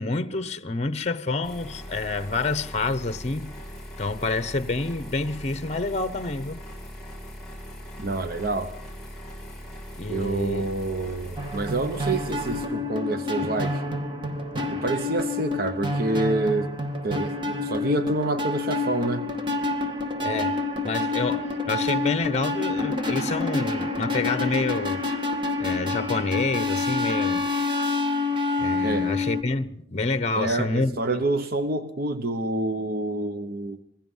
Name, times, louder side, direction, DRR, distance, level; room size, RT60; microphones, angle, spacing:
voice 1, 0.0-3.5 4.0-6.6 10.0-10.6 20.2-25.1 25.6-27.5 28.6-31.0, left 3 dB, 40° left, 0.9 m, -28 dB
sound 1, 1.4-12.7, equal, 5° left, 7.5 m, -40 dB
voice 2, 8.0-8.7 10.1-13.8 14.7-16.7 17.0-19.3 28.8-29.1 30.4-33.8, right 2 dB, 55° right, 1.0 m, -27 dB
sound 2, 11.4-29.4, left 3 dB, 30° right, 2.1 m, -28 dB
27.0 x 20.0 x 5.6 m
head